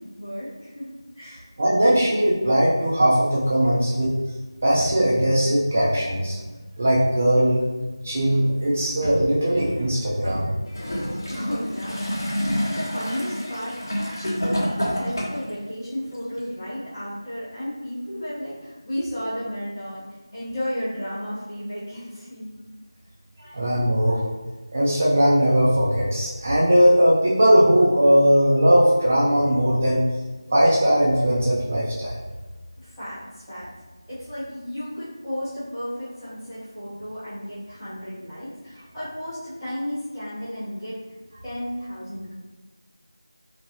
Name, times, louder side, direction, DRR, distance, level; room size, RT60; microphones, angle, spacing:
voice 1, 0.0-1.4 11.3-20.0 20.3-22.5 23.4-23.6 32.8-33.7 34.1-41.0 41.4-42.3, equal, 5° left, -21 dB, 0.8 m, -33 dB
voice 2, 1.6-4.1 4.6-6.4 6.8-7.6 8.0-10.5 23.4-24.3 24.7-30.0 30.5-32.2, equal, 20° right, -6 dB, 0.3 m, -19 dB
Gurgling / Toilet flush, 10.7-15.5 16.4-16.5, equal, 50° left, 0.8 m, -28 dB
3.1 x 2.1 x 2.7 m, 1.3 s
figure-of-eight pair, 170°, 2 cm